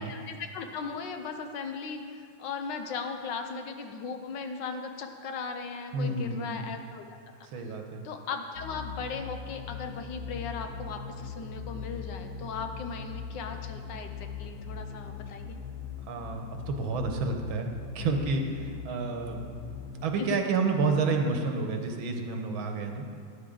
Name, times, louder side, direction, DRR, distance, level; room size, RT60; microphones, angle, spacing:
voice 1, 0.0-7.0 7.6-7.7 8.0-15.6 20.3-20.4, left 5 dB, 70° left, 6 dB, 1.3 m, -37 dB
voice 2, 5.9-6.6 7.4-8.0 16.1-23.1, right 3 dB, 90° right, 4 dB, 1.8 m, -30 dB
sound 1, 8.5-20.1, left 6 dB, 55° left, 1.1 m, -40 dB
12.5 x 10.0 x 3.8 m, 2.2 s
omnidirectional pair, 2.2 m